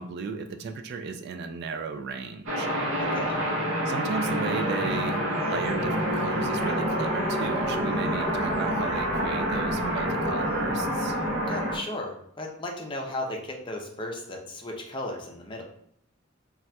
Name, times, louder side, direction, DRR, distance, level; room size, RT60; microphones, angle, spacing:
voice 1, 0.0-2.7 3.9-11.2, right 4 dB, 55° right, 6 dB, 0.3 m, -34 dB
sound 1, 2.5-11.8, equal, 70° right, 0.8 m, -27 dB
voice 2, 3.0-3.4 11.5-15.6, left 1 dB, 25° left, 1 dB, 0.5 m, -35 dB
4.0 x 2.3 x 2.2 m, 0.69 s
head